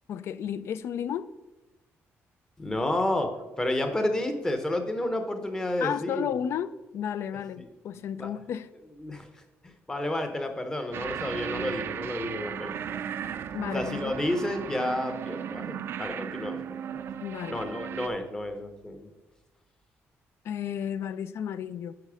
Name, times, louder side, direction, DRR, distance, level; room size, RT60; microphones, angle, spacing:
voice 1, 0.1-1.3 5.8-8.7 13.5-14.2 17.2-17.7 20.4-21.9, left 9 dB, 65° left, 0.4 m, -33 dB
voice 2, 2.6-6.3 7.6-7.7 8.2-8.3 9.0-9.3 9.9-13.0 13.7-16.8 17.5-19.1, left 1 dB, 15° left, 0.8 m, -30 dB
sound 1, 10.9-18.1, right 9 dB, 55° right, 0.3 m, -36 dB
10.5 x 4.2 x 4.9 m
cardioid pair, 165°, 5 cm